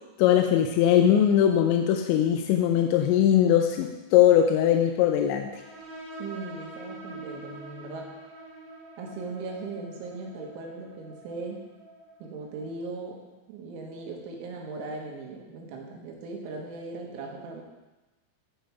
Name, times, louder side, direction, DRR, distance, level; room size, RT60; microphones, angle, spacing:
voice 1, 0.2-5.5, left 10 dB, 85° left, 5 dB, 2.7 m, -21 dB
sound 1, 5.5-12.8, right 1 dB, 55° right, 1.6 m, -45 dB
voice 2, 6.2-8.1 9.0-11.6 12.2-13.2 13.5-17.6, right 3 dB, 80° right, 0 dB, 3.6 m, -38 dB
12.5 x 5.1 x 4.6 m, 1.1 s
omnidirectional pair, 5.6 m